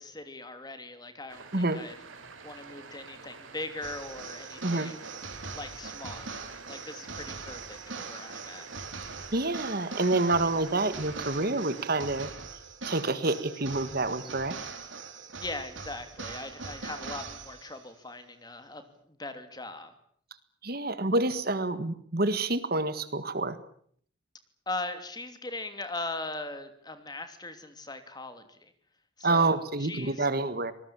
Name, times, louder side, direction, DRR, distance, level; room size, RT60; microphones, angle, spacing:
voice 1, 0.0-1.9 2.4-5.0 5.5-8.7 15.4-19.9 24.7-28.7 29.2-30.3, left 2 dB, 20° left, 9 dB, 2.8 m, -40 dB
sound 1, 1.3-12.3, right 4 dB, 90° right, 3.9 m, -48 dB
voice 2, 1.5-1.8 4.6-4.9 9.3-12.3 12.8-14.6 20.6-23.6 29.2-30.7, right 2 dB, 50° right, 13 dB, 1.7 m, -28 dB
sound 2, 3.8-17.9, right 4 dB, 75° right, 3.7 m, -41 dB
26.0 x 20.0 x 8.8 m, 0.62 s
head